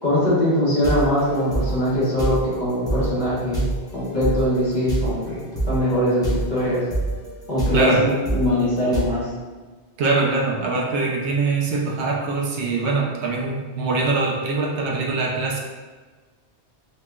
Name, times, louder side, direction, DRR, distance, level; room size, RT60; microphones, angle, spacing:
voice 1, 0.0-6.8 7.5-9.3, equal, 40° left, -8 dB, 1.0 m, -22 dB
sound 1, 0.7-9.0, right 2 dB, 5° left, 0.5 m, -27 dB
voice 2, 10.0-15.6, right 3 dB, 80° right, -1 dB, 0.9 m, -23 dB
2.9 x 2.8 x 2.3 m, 1.3 s
omnidirectional pair, 1.1 m